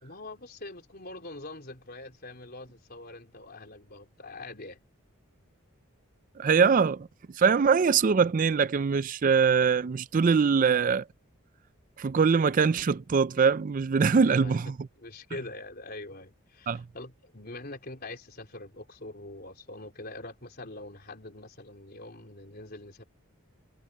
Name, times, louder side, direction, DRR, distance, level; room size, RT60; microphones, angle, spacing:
voice 1, 0.0-4.8 14.1-14.6 15.0-23.0, left 2 dB, 45° left, 4.2 m, -43 dB
voice 2, 6.4-7.1 7.3-11.0 12.0-14.7 16.7-16.8, right 5 dB, 40° right, 0.4 m, -23 dB
head